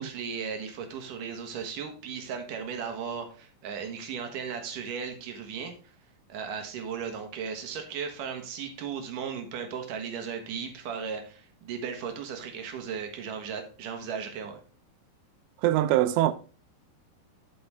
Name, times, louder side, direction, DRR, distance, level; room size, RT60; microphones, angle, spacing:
voice 1, 0.0-5.7 6.3-14.6, right 6 dB, 65° right, 2.3 m, -36 dB
voice 2, 15.6-16.3, right 14 dB, 80° right, 2.7 m, -23 dB
8.6 x 7.9 x 3.3 m
omnidirectional pair, 5.2 m